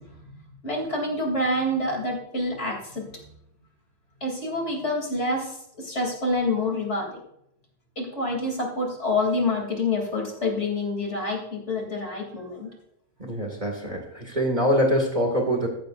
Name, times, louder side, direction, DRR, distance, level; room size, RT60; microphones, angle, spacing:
voice 1, 0.6-3.1 4.2-7.2 8.0-12.7, left 2 dB, 45° left, 0 dB, 3.5 m, -27 dB
voice 2, 13.2-15.7, equal, 30° right, 2 dB, 2.3 m, -24 dB
14.5 x 14.0 x 2.6 m, 0.77 s
omnidirectional pair, 1.6 m